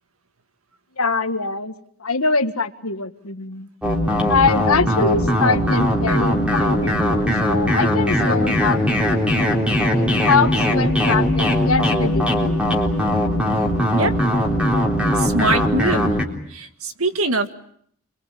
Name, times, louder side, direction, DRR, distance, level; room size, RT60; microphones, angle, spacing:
voice 1, 1.0-1.7 2.0-3.7 4.3-9.2 10.0-12.6, left 4 dB, 90° left, 8 dB, 1.8 m, -23 dB
sound 1, 3.8-16.2, equal, 5° right, 3.7 m, -20 dB
voice 2, 15.2-16.2 16.5-17.5, right 2 dB, 85° right, 8 dB, 1.9 m, -22 dB
27.5 x 22.5 x 8.5 m, 0.67 s
head